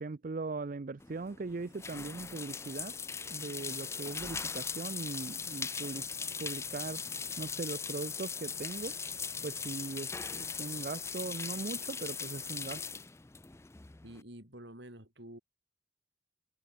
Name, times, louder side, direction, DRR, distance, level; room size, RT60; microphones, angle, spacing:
voice 1, 0.0-3.0 3.3-6.1 6.4-7.0 7.4-9.0 9.4-12.8, right 3 dB, 45° right, 0.5 m, -40 dB
sound 1, 1.0-14.2, left 5 dB, 15° left, 0.4 m, -39 dB
voice 2, 14.0-15.4, right 1 dB, 60° right, 5.1 m, -49 dB
head